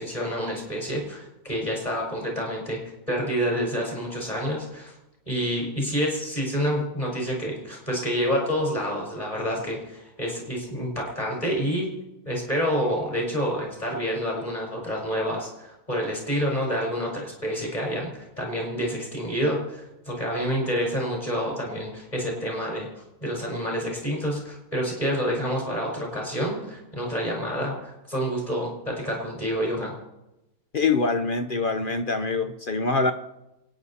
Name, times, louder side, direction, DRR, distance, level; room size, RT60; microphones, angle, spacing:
voice 1, 0.0-2.8 3.1-4.9 5.3-11.9 12.2-22.9 23.2-29.9, equal, 20° left, -2 dB, 4.9 m, -28 dB
voice 2, 30.7-33.1, left 4 dB, 50° left, 8 dB, 0.7 m, -24 dB
27.0 x 9.6 x 4.2 m, 0.94 s
omnidirectional pair, 1.6 m